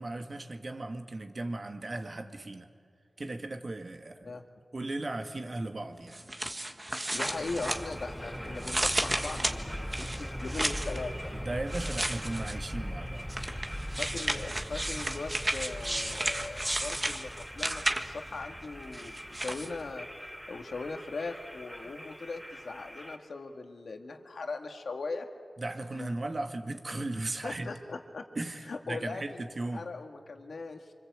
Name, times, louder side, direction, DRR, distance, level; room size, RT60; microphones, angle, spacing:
voice 1, 0.0-2.7 3.2-4.4 4.7-6.2 11.3-13.3 25.6-27.7 28.4-29.9, right 2 dB, 50° right, 6 dB, 1.9 m, -37 dB
sound 1, 6.1-8.2 8.6-11.0 11.7-12.7 13.3-18.3 18.9-19.7, right 1 dB, 25° right, 1.8 m, -33 dB
voice 2, 7.1-11.1 14.0-20.1 20.5-25.3 25.9-26.1 27.4-28.3 28.7-29.4 29.7-30.9, left 3 dB, 80° left, 5 dB, 1.9 m, -39 dB
sound 2, 7.2-23.2, equal, 5° right, 4.4 m, -40 dB
26.5 x 25.0 x 8.2 m, 2.2 s
cardioid pair, 50°, 0 cm